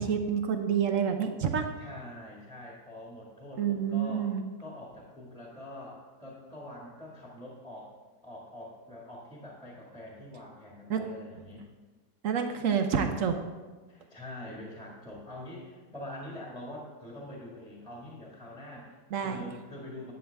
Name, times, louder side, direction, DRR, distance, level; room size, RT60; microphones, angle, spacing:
voice 1, 0.0-1.7 3.6-4.4 10.9-11.0 12.2-13.3 19.1-19.4, right 7 dB, 60° right, 6 dB, 1.0 m, -28 dB
voice 2, 1.8-4.3 4.6-7.9 8.2-11.6 13.9-20.1, left 1 dB, 5° left, -4 dB, 1.6 m, -44 dB
10.0 x 8.8 x 3.4 m, 1.3 s
omnidirectional pair, 1.8 m